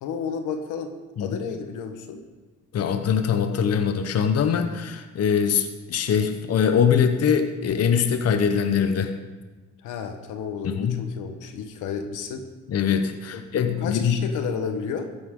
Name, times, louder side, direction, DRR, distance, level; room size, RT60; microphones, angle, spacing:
voice 1, 0.0-0.9 1.2-2.2 9.8-12.5 13.3-13.4 13.8-15.1, left 6 dB, 90° left, 6 dB, 1.3 m, -32 dB
voice 2, 2.7-9.1 10.6-11.0 12.7-14.2, left 7 dB, 55° left, 7 dB, 0.9 m, -22 dB
14.5 x 11.0 x 3.8 m, 1.2 s
cardioid pair, 90°, 30 cm